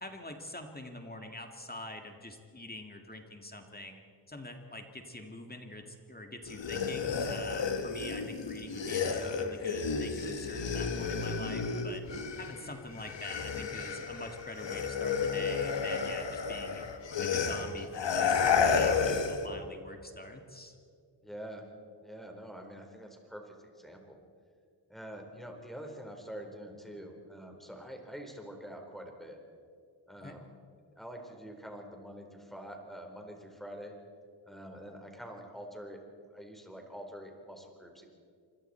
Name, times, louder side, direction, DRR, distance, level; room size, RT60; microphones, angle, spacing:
voice 1, 0.0-4.0 4.3-12.0 12.4-16.9 17.2-20.8 30.2-30.4, left 1 dB, 20° left, 4 dB, 2.0 m, -45 dB
sound 1, 6.4-12.7 12.9-19.5, left 5 dB, 75° left, 1.8 m, -32 dB
voice 2, 21.2-21.6 22.0-24.2 24.9-29.4 30.1-30.4 31.0-33.9 34.4-36.0 36.3-38.1, equal, ahead, 2 dB, 4.3 m, -46 dB
26.5 x 22.0 x 4.5 m, 2.3 s
cardioid pair, 80°, 44 cm